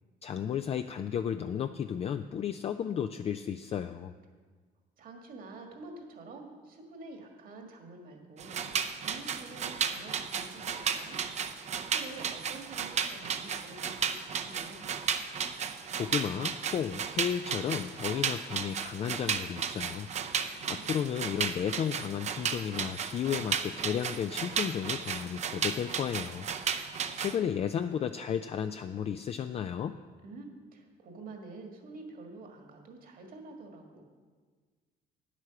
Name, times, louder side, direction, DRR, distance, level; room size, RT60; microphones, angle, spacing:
voice 1, 0.2-4.2 16.0-20.1 20.7-26.5 27.2-30.0, left 8 dB, 35° left, 8 dB, 0.4 m, -33 dB
voice 2, 5.0-14.8 20.3-20.9 30.2-34.0, right 3 dB, 55° right, 3 dB, 1.8 m, -48 dB
sound 1, 8.4-27.4, right 7 dB, 40° right, 0.6 m, -34 dB
9.6 x 8.2 x 5.8 m, 1.5 s
cardioid pair, 110°, 17 cm